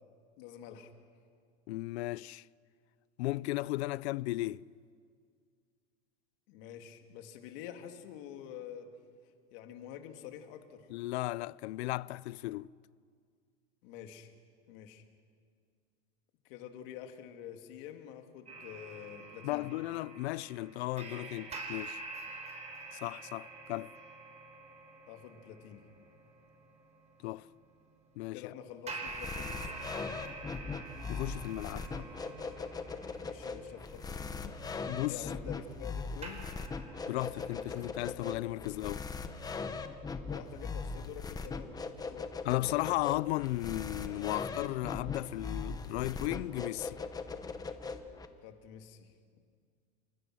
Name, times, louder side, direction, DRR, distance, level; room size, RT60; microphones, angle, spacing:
voice 1, 0.4-0.9 6.5-8.9 9.5-10.9 13.8-14.3 14.7-15.0 16.4-19.7 25.1-25.9 28.3-29.7 33.2-34.6 35.1-36.5 40.2-41.8 42.1-42.3 48.4-49.4, left 9 dB, 55° left, 2.8 m, -47 dB
voice 2, 1.7-2.4 3.2-4.6 10.9-12.7 19.4-22.0 22.9-23.9 27.2-27.5 28.2-28.5 31.1-32.1 34.9-35.3 37.1-39.1 42.4-47.0, left 18 dB, 80° left, 0.6 m, -35 dB
sound 1, 18.5-27.2 28.9-36.0 36.2-37.9, right 3 dB, 20° right, 4.7 m, -47 dB
sound 2, 29.1-48.3, left 4 dB, 10° left, 1.1 m, -40 dB
28.5 x 26.5 x 6.3 m
supercardioid pair, 155°, 32 cm